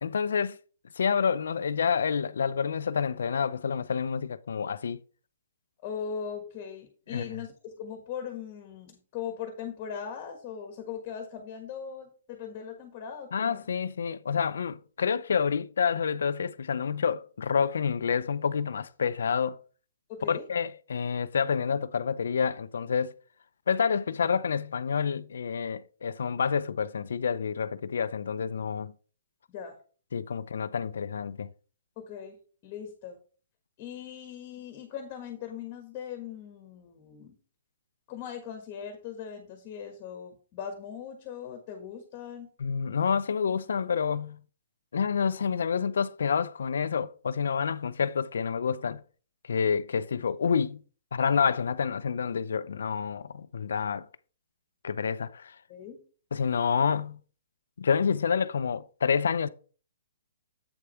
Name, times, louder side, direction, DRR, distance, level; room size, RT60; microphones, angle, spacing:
voice 1, 0.0-0.6 1.0-5.0 7.1-7.4 13.3-19.6 20.3-23.1 23.7-28.9 30.1-31.5 42.6-44.4 44.9-49.0 49.5-50.8 51.1-54.1 54.8-55.5 56.3-57.2 57.8-59.5, left 6 dB, 75° left, 0.6 m, -28 dB
voice 2, 5.8-13.6 20.1-20.5 29.5-29.8 32.0-33.2 33.8-37.3 38.1-42.5 55.7-56.0, left 7 dB, 25° left, 1.5 m, -39 dB
8.1 x 5.0 x 4.3 m
hypercardioid pair, 160°, 0 cm